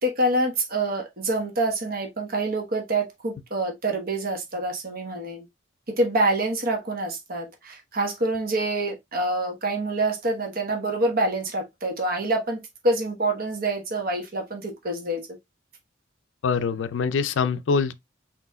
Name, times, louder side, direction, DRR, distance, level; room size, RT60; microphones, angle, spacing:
voice 1, 0.0-5.5 5.9-15.3, right 2 dB, 55° right, 1.2 m, -26 dB
voice 2, 16.4-17.9, left 5 dB, 80° left, 0.4 m, -24 dB
4.4 x 4.0 x 2.2 m
head